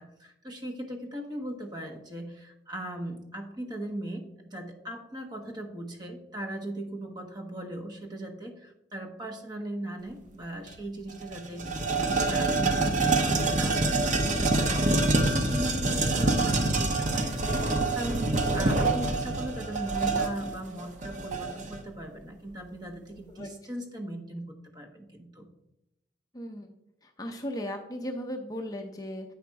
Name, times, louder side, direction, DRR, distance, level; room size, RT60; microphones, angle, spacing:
voice 1, 0.0-25.5, right 1 dB, 25° right, 2 dB, 1.0 m, -39 dB
sound 1, 10.7-10.8 11.1-21.8, right 2 dB, 40° right, 0.7 m, -26 dB
voice 2, 26.3-26.7 27.0-29.3, equal, 20° left, 3 dB, 0.6 m, -37 dB
8.5 x 5.0 x 4.6 m, 0.87 s
head